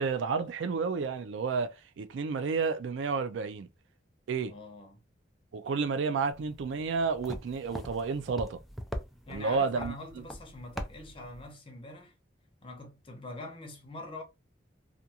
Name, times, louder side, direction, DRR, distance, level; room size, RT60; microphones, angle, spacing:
voice 1, 0.0-3.7 4.3-4.5 5.5-8.6 9.3-9.9, right 5 dB, 90° right, 0.4 m, -31 dB
voice 2, 4.4-5.0 9.3-12.1 12.6-14.2, left 2 dB, 30° left, 0.7 m, -44 dB
sound 1, 6.3-11.5, equal, ahead, 0.3 m, -42 dB
2.5 x 2.3 x 2.7 m
head